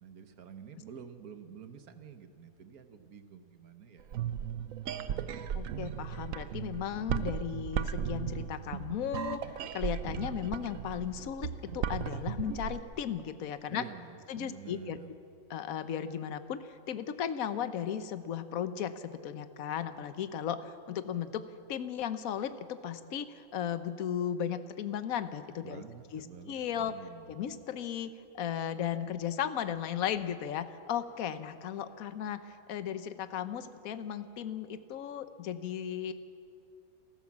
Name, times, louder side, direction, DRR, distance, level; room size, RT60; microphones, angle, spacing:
voice 1, 0.0-4.2 13.7-15.2 25.6-26.6 26.8-27.4, right 7 dB, 85° right, 8 dB, 1.7 m, -49 dB
sound 1, 4.0-12.8, right 9 dB, 70° right, 1.1 m, -36 dB
voice 2, 5.5-13.8 14.3-15.0 15.5-21.4 21.7-25.8 26.1-26.2 26.5-26.9 27.3-36.1, left 9 dB, 75° left, 11 dB, 1.3 m, -36 dB
29.0 x 13.5 x 7.4 m, 2.5 s
omnidirectional pair, 1.5 m